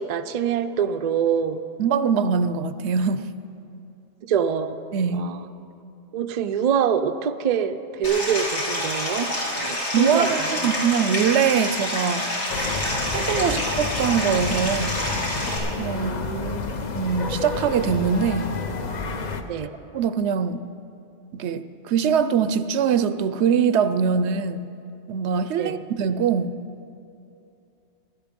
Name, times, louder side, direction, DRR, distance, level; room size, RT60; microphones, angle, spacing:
voice 1, 0.0-1.6 4.2-4.8 5.1-5.5 6.1-10.7 15.9-16.6 19.5-19.7 25.6-25.8, right 7 dB, 50° right, 9 dB, 0.5 m, -25 dB
voice 2, 1.8-3.3 4.9-5.3 9.9-12.3 13.1-15.0 15.8-16.2 16.9-18.6 19.9-20.6 21.3-24.7 25.1-26.5, right 7 dB, 80° right, 13 dB, 0.9 m, -23 dB
Stream, 8.0-15.6, left 1 dB, 85° left, 3.1 m, -27 dB
sound 1, 12.5-19.4, left 3 dB, 45° left, 0.8 m, -30 dB
16.0 x 11.5 x 5.2 m, 2.7 s
omnidirectional pair, 1.1 m